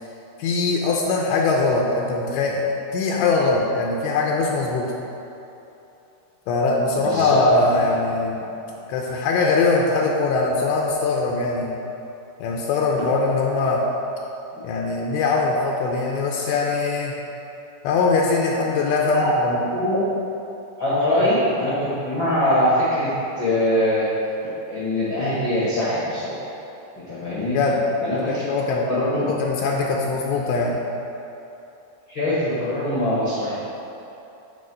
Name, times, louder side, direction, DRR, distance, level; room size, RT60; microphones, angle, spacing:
voice 1, 0.4-2.7 2.9-4.9 6.5-8.4 8.9-11.8 12.4-13.8 14.6-17.1 17.8-19.6 21.2-21.3 27.5-27.8 28.3-28.8 29.2-30.8, left 3 dB, 80° left, -1 dB, 2.7 m, -21 dB
voice 2, 7.0-7.4 19.2-19.3 19.7-20.0 20.8-24.1 24.7-26.4 27.1-27.6 28.0-28.4 28.9-29.2 32.1-33.5, left 1 dB, 60° left, -10 dB, 1.2 m, -22 dB
11.0 x 4.6 x 6.3 m, 2.9 s
omnidirectional pair, 5.5 m